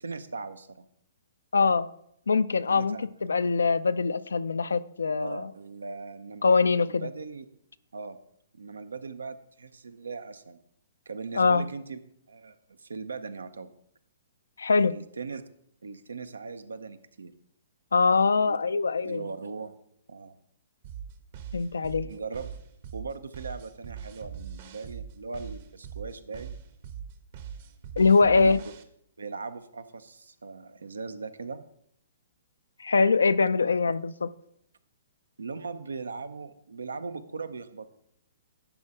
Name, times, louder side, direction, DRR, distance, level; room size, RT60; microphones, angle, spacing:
voice 1, 0.0-0.9 2.7-3.1 5.2-6.4 6.9-7.5 7.9-8.2 8.5-10.6 11.1-12.0 12.3-13.7 14.9-15.4 15.8-17.3 18.4-18.6 19.0-19.8 20.1-20.4 22.0-22.6 22.9-26.6 28.2-28.6 29.2-31.6 35.4-37.9, right 4 dB, 90° right, 0.7 m, -39 dB
voice 2, 1.5-1.9 2.3-5.5 6.4-7.1 11.3-11.6 14.6-14.9 17.9-19.2 21.5-22.1 28.0-28.6 32.8-34.3, left 4 dB, 85° left, 0.4 m, -23 dB
sound 1, 20.8-28.8, right 8 dB, 50° right, 1.0 m, -41 dB
11.0 x 4.4 x 4.9 m
hypercardioid pair, 135°, 0 cm